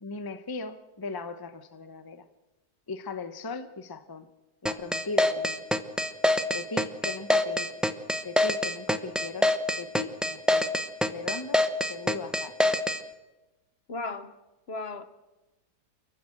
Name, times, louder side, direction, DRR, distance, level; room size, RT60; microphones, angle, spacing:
voice 1, 0.0-2.3 2.9-4.3 4.6-5.6 6.5-7.7 8.2-9.5 9.8-10.7 11.0-12.6, left 3 dB, 15° left, 0.7 m, -38 dB
sound 1, 4.7-13.0, left 1 dB, ahead, 0.3 m, -24 dB
voice 2, 13.9-14.3 14.7-15.0, left 3 dB, 40° left, 1.1 m, -35 dB
29.0 x 12.5 x 7.8 m
omnidirectional pair, 1.9 m